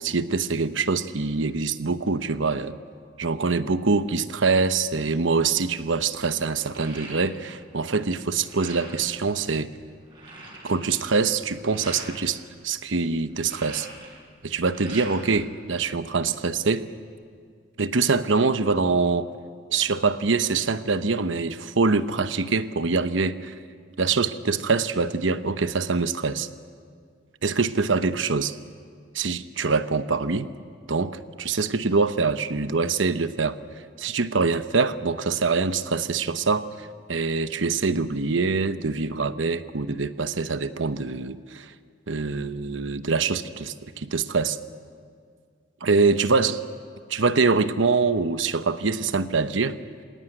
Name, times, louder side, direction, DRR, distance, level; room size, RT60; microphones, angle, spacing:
voice 1, 0.0-2.8 3.2-9.7 10.6-13.9 14.4-16.9 17.8-19.3 19.7-23.5 24.0-26.5 27.4-28.6 29.1-30.5 30.9-33.6 34.0-41.7 42.1-44.6 45.8-46.6 47.1-49.8, right 4 dB, 75° right, 11 dB, 0.9 m, -24 dB
sound 1, 6.4-7.6 7.9-9.1 9.6-9.7 9.9-12.1 13.1-15.4 15.7-16.6, right 2 dB, 25° right, 7.0 m, -43 dB
26.5 x 18.0 x 9.1 m, 2.1 s
head